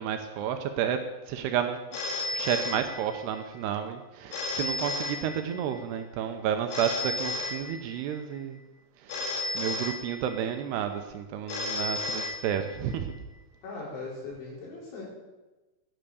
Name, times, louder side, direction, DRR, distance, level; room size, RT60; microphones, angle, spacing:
voice 1, 0.0-1.8 2.3-8.6 9.0-13.1, right 9 dB, 80° right, 7 dB, 2.5 m, -31 dB
Telephone, 1.9-3.4 4.3-5.8 6.7-8.2 9.1-10.6 11.5-13.0, left 2 dB, 65° left, 2.7 m, -33 dB
voice 2, 13.6-15.0, left 3 dB, 85° left, -5 dB, 6.9 m, -39 dB
10.5 x 10.0 x 6.9 m, 1.1 s
omnidirectional pair, 5.3 m